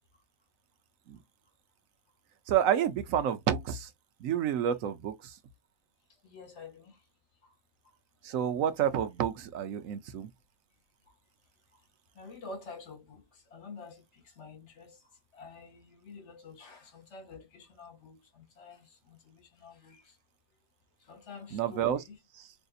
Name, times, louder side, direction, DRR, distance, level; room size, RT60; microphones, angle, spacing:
voice 1, 2.5-3.9 4.2-5.4 8.2-10.3 21.5-22.0 22.3-22.5, right 9 dB, 90° right, 1.1 m, -29 dB
voice 2, 6.2-6.9 12.2-13.2 13.5-14.0 14.4-14.9 15.3-18.2 18.6-20.0 21.1-21.9, left 4 dB, 60° left, 2.0 m, -48 dB
5.6 x 2.6 x 2.4 m
omnidirectional pair, 1.3 m